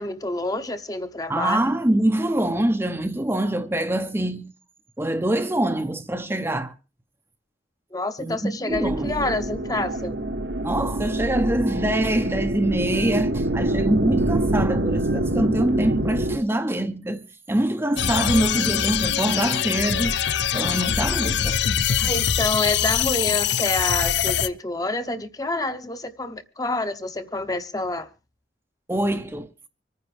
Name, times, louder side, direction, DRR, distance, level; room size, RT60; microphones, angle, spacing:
voice 1, 0.0-1.6 7.9-10.2 22.0-28.1, left 2 dB, 20° left, 0.9 m, -28 dB
voice 2, 1.3-4.5 5.0-6.7 8.2-9.1 10.6-20.2 20.5-21.6 28.9-29.5, right 1 dB, 10° right, 0.7 m, -24 dB
sound 1, 8.7-16.4, right 1 dB, 65° right, 1.1 m, -25 dB
sound 2, 18.0-24.5, left 8 dB, 65° left, 0.7 m, -23 dB
25.5 x 9.8 x 3.3 m
head